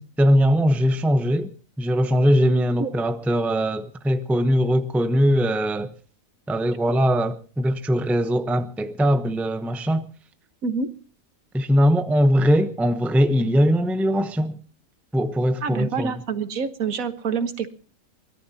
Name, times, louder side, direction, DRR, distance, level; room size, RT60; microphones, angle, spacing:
voice 1, 0.0-1.5 1.8-5.9 6.5-10.0 11.5-14.6 15.1-16.2, equal, ahead, 0.6 m, -21 dB
voice 2, 15.6-17.7, right 5 dB, 75° right, 1.6 m, -27 dB
23.5 x 18.0 x 2.8 m
omnidirectional pair, 1.5 m